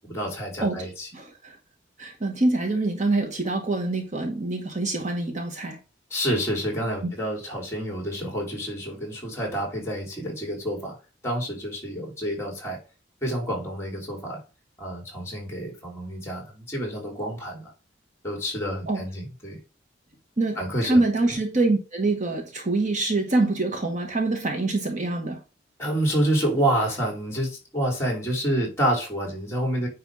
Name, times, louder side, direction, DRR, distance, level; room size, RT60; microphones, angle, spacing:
voice 1, 0.0-1.1 6.1-11.0 11.2-12.8 13.2-14.4 14.8-17.7 18.2-19.6 20.6-21.0 25.8-29.9, right 1 dB, 15° left, 3.6 m, -28 dB
voice 2, 0.6-1.6 2.0-5.8 7.0-7.1 18.9-19.0 20.4-25.4, right 2 dB, 40° right, 1.4 m, -25 dB
9.4 x 3.4 x 4.9 m
head